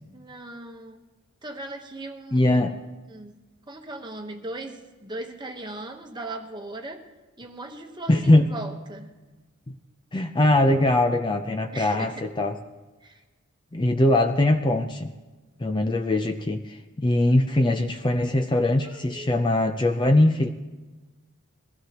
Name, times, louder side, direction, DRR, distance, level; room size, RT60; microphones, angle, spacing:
voice 1, 0.1-1.1 1.4-2.8 3.1-3.4 3.7-7.1 7.4-9.1 11.7-12.3 13.0-13.2 18.8-19.5, right 2 dB, 20° right, 4 dB, 1.1 m, -38 dB
voice 2, 2.3-2.7 8.1-8.5 10.1-12.6 13.7-15.1 15.6-20.5, left 1 dB, 20° left, 6 dB, 0.5 m, -21 dB
22.5 x 16.0 x 2.9 m, 1.2 s
head